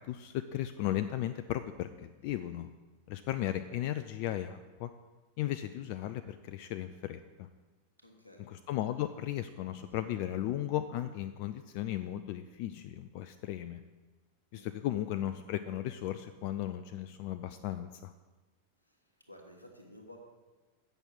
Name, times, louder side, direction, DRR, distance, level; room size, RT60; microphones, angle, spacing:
voice 1, 0.1-2.7 3.1-4.9 5.4-7.5 8.4-13.8 14.5-18.1, left 12 dB, 45° left, 10 dB, 0.3 m, -36 dB
voice 2, 8.0-8.5 8.9-9.0 14.5-14.9 18.9-19.0 19.3-20.2, left 1 dB, 85° left, 2 dB, 1.3 m, -54 dB
7.9 x 6.0 x 5.8 m, 1.2 s
figure-of-eight pair, 90°, 0 cm